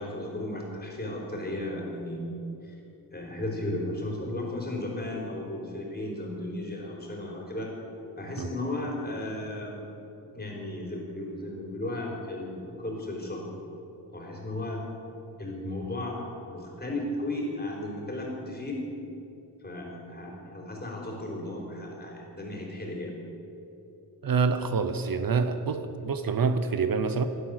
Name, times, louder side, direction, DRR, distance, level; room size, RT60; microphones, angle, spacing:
voice 1, 0.0-2.2 2.6-2.7 3.1-7.7 8.2-9.9 10.3-13.4 14.1-14.8 15.4-18.8 19.6-23.1, left 1 dB, 25° left, -2 dB, 4.0 m, -35 dB
voice 2, 24.2-27.3, right 5 dB, 60° right, 9 dB, 0.9 m, -26 dB
17.0 x 11.5 x 6.5 m, 3.0 s
wide cardioid pair, 110°, 39 cm